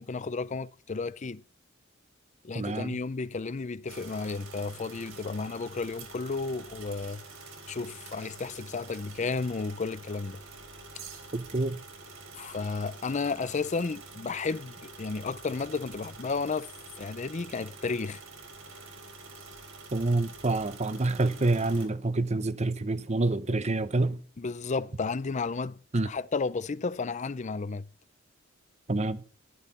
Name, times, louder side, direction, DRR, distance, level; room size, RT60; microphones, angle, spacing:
voice 1, 0.0-1.4 2.4-7.2 7.7-10.4 12.3-16.7 17.0-18.2 24.4-27.9, left 4 dB, 35° left, 0.5 m, -33 dB
voice 2, 2.5-3.0 11.3-11.8 19.9-24.2 25.9-26.1 28.9-29.2, right 2 dB, 35° right, 0.8 m, -27 dB
sound 1, 3.9-21.9, right 3 dB, 85° right, 3.7 m, -47 dB
14.0 x 11.5 x 4.3 m
head